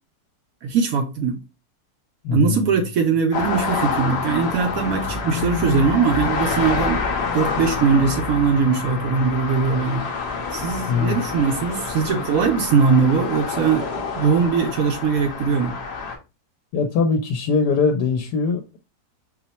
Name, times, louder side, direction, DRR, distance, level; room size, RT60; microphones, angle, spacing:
voice 1, 0.6-1.4 2.3-7.0 7.3-10.1 10.5-15.8, right 5 dB, 70° right, 0.8 m, -21 dB
voice 2, 2.2-2.8 10.9-11.2 12.1-12.5 16.7-18.8, left 5 dB, 80° left, 1.2 m, -22 dB
sound 1, 3.3-16.2, left 5 dB, 50° left, 0.8 m, -27 dB
4.4 x 2.1 x 4.1 m
omnidirectional pair, 1.8 m